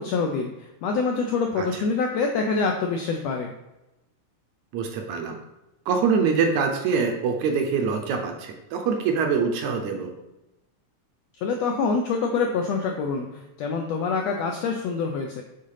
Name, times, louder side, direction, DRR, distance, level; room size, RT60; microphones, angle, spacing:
voice 1, 0.0-3.5 11.4-15.4, left 4 dB, 80° left, 3 dB, 1.5 m, -26 dB
voice 2, 4.7-5.4 5.9-10.1, right 5 dB, 75° right, 3 dB, 1.9 m, -24 dB
6.7 x 3.7 x 5.6 m, 0.96 s
omnidirectional pair, 3.6 m